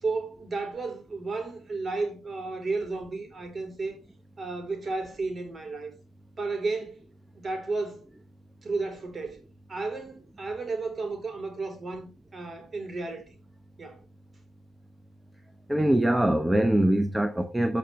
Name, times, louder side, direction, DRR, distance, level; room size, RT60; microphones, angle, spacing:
voice 1, 0.0-4.0 4.4-5.9 6.4-7.0 7.3-8.0 8.6-9.4 9.7-13.3 13.8-14.0, right 3 dB, 35° right, 3.7 m, -33 dB
voice 2, 15.7-17.8, right 1 dB, 10° right, 0.9 m, -23 dB
14.5 x 5.3 x 3.3 m
cardioid pair, 90°, 0 cm